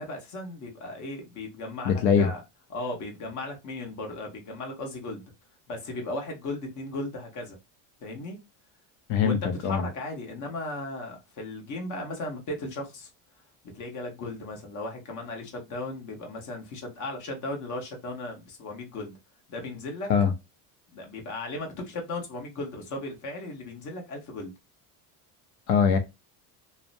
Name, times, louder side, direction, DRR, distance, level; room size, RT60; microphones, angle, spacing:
voice 1, 0.0-2.4 2.7-5.2 5.7-7.6 8.0-8.4 9.2-13.1 13.7-19.2 19.5-20.1 20.9-24.5, left 2 dB, 40° left, 1.0 m, -36 dB
voice 2, 1.8-2.3 9.1-9.8 20.1-20.3 25.7-26.0, left 6 dB, 90° left, 0.6 m, -22 dB
2.6 x 2.1 x 2.5 m
cardioid pair, 135°, 45 cm